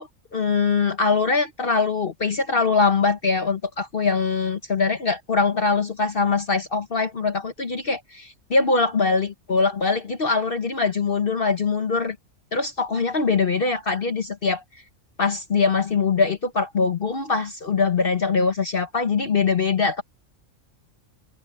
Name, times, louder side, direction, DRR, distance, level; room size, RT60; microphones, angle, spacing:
voice 1, 0.0-12.2 12.5-14.6 15.2-20.0, left 4 dB, 45° left, 1.2 m, -22 dB
omnidirectional pair, 1.4 m